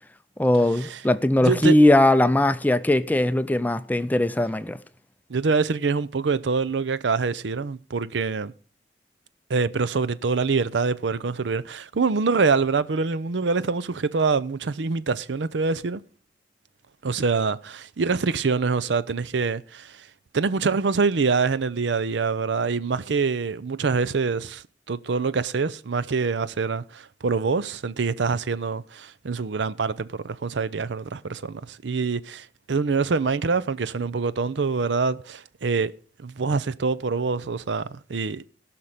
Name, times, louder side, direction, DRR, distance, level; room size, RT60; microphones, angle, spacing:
voice 1, 0.4-4.8, left 1 dB, 10° left, 0.4 m, -19 dB
voice 2, 1.4-1.8 5.3-8.5 9.5-16.0 17.0-20.1 20.3-35.9 36.2-38.5, right 4 dB, 75° right, 0.6 m, -25 dB
17.5 x 5.9 x 5.0 m
head